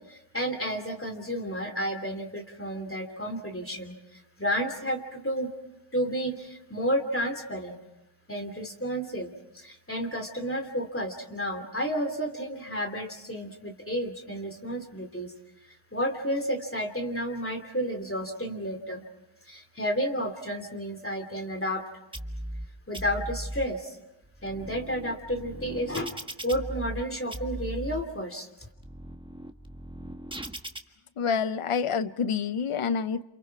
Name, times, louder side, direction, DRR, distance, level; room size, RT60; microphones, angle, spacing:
voice 1, 0.1-5.5 5.9-7.8 8.3-15.3 15.6-19.0 19.5-21.8 22.9-24.0 24.4-26.1 26.4-28.5, equal, 25° left, 4 dB, 3.0 m, -31 dB
sound 1, 22.1-22.7 22.9-23.7 24.2-27.0 27.3-28.0 28.6-30.8, right 1 dB, 10° right, 1.6 m, -38 dB
voice 2, 31.2-33.2, left 6 dB, 90° left, 13 dB, 0.9 m, -27 dB
28.5 x 28.5 x 4.7 m, 0.91 s
wide cardioid pair, 65°, 49 cm